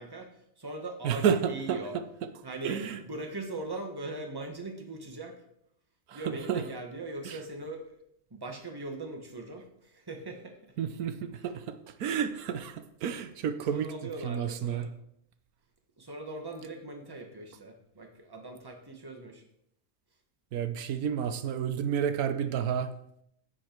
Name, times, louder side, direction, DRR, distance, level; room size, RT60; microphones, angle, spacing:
voice 1, 0.0-2.0 2.4-5.4 6.1-8.0 8.3-10.7 13.7-14.9 16.0-19.4, right 2 dB, 15° right, 4 dB, 1.3 m, -40 dB
voice 2, 1.0-1.8 2.6-3.0 6.1-6.6 7.2-7.4 10.8-13.9 14.2-14.9 20.5-22.9, right 8 dB, 90° right, 10 dB, 1.3 m, -30 dB
10.5 x 7.6 x 4.5 m, 0.73 s
omnidirectional pair, 1.5 m